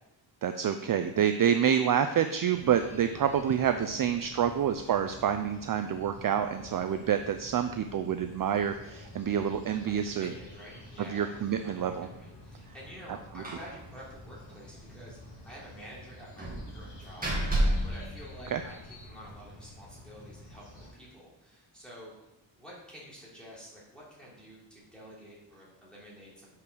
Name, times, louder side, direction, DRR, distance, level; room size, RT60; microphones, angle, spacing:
voice 1, 0.4-10.3 11.1-12.1 13.4-13.5 18.5-18.6, right 8 dB, 45° right, 8 dB, 0.4 m, -28 dB
sound 1, 2.5-20.9, left 1 dB, 65° left, 3.1 m, -50 dB
voice 2, 9.8-22.1 22.6-26.5, equal, ahead, -7 dB, 3.1 m, -50 dB
Slam, 13.4-13.8 14.0-14.1 14.5-14.6 16.4-19.0, right 1 dB, 20° right, 1.9 m, -31 dB
6.7 x 5.7 x 6.2 m, 0.99 s
wide cardioid pair, 175°, 47 cm